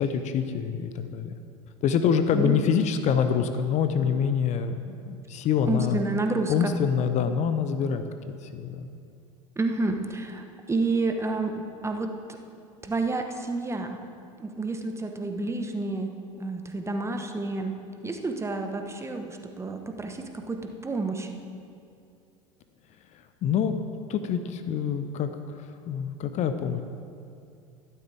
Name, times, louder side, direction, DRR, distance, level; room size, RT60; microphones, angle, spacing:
voice 1, 0.0-1.3 1.8-6.0 6.5-8.0 8.4-8.9 23.1-23.8 24.1-26.8, left 7 dB, 45° left, 9 dB, 0.7 m, -26 dB
voice 2, 5.7-6.7 9.6-11.5 11.8-12.4 12.8-14.0 14.4-16.1 16.4-17.7 18.0-21.3, right 2 dB, 15° right, 5 dB, 1.1 m, -29 dB
13.5 x 12.0 x 3.5 m, 2.5 s
hypercardioid pair, 75°, 17 cm